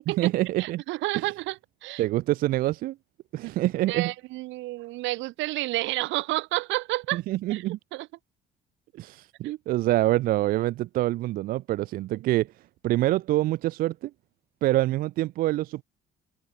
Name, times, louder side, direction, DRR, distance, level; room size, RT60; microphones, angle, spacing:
voice 1, 0.1-0.8 2.0-3.0 3.3-4.1 7.1-7.8 8.9-12.5 12.8-14.1 14.6-15.8, right 16 dB, 50° right, 0.4 m, -26 dB
voice 2, 0.6-2.0 3.4-3.5 3.9-7.2 7.5-7.6 7.9-8.1, right 19 dB, 75° right, 2.4 m, -30 dB
open air
cardioid pair, 175°, 20 cm